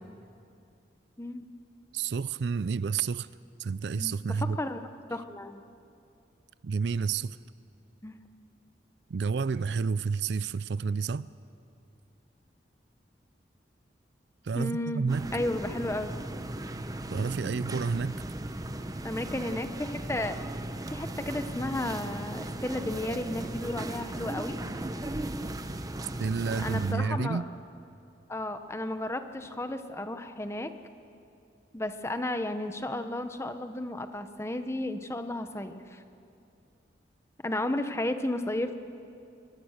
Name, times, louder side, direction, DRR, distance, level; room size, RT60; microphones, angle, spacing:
voice 1, 1.9-3.3 3.6-4.6 6.6-7.4 9.1-11.3 14.4-15.3 17.1-18.2 26.2-27.4, right 5 dB, 65° right, 0.4 m, -30 dB
voice 2, 5.1-5.6 8.0-8.2 14.5-16.1 19.0-20.5 20.9-24.6 26.6-27.4 28.3-30.7 31.7-36.0 37.4-38.8, left 1 dB, 15° left, 0.9 m, -33 dB
sound 1, 15.1-26.9, right 1 dB, 20° right, 0.8 m, -37 dB
22.5 x 20.0 x 6.5 m
head